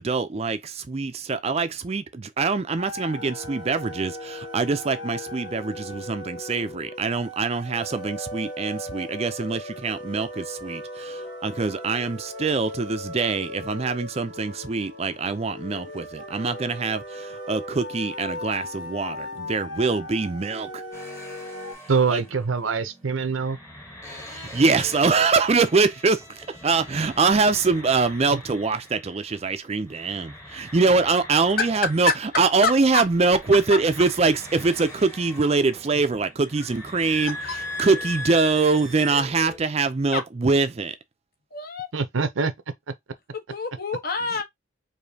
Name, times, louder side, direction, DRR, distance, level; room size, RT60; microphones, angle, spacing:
voice 1, 0.0-20.8 22.1-22.2 24.3-32.1 32.4-37.4 37.8-40.9, right 4 dB, 35° right, 0.4 m, -24 dB
sound 1, 2.8-21.7, left 1 dB, 80° left, 2.1 m, -37 dB
sound 2, 20.9-29.6 29.8-39.6, left 1 dB, 15° left, 1.1 m, -40 dB
voice 2, 21.9-23.6 28.3-28.4 41.9-42.5, right 5 dB, 90° right, 0.7 m, -24 dB
voice 3, 31.6-32.2 32.6-33.0 33.7-33.8 36.8-37.5 40.1-40.2 41.5-41.9 43.3-44.4, left 5 dB, 50° left, 1.0 m, -28 dB
4.9 x 2.7 x 2.7 m
head